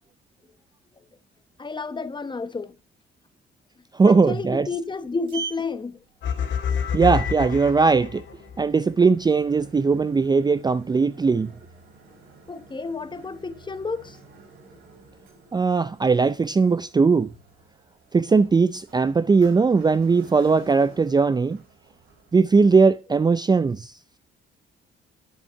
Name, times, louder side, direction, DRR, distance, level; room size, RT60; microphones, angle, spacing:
voice 1, 1.6-2.7 4.1-6.0 12.5-14.2, left 4 dB, 25° left, 1.0 m, -31 dB
voice 2, 3.9-4.7 6.9-8.2 8.6-11.5 15.5-17.3 18.1-21.6 22.3-23.9, right 4 dB, 20° right, 0.4 m, -19 dB
Sliding door, 4.7-23.0, right 5 dB, 90° right, 5.5 m, -46 dB
sound 1, 6.2-8.6, left 7 dB, 65° left, 2.3 m, -27 dB
10.5 x 7.1 x 5.8 m
cardioid pair, 90°, 20 cm